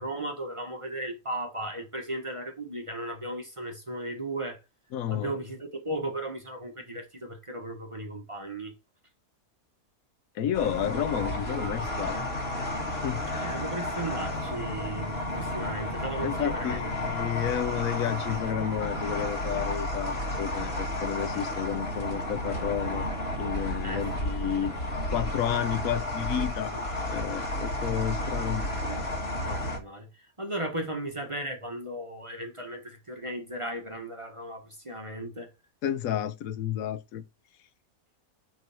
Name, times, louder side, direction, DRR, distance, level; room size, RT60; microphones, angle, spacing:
voice 1, 0.0-4.6 5.1-8.7 13.3-16.9 23.8-24.0 26.7-26.8 28.7-29.1 29.4-35.5, right 1 dB, 20° right, 1.4 m, -36 dB
voice 2, 4.9-5.3 10.4-12.2 12.9-13.6 16.2-23.1 23.4-24.7 25.1-26.8 27.0-29.0 35.8-37.2, left 10 dB, 75° left, 1.1 m, -31 dB
sound 1, 10.5-29.8, left 1 dB, 45° left, 1.9 m, -32 dB
9.1 x 3.8 x 4.4 m
omnidirectional pair, 1.5 m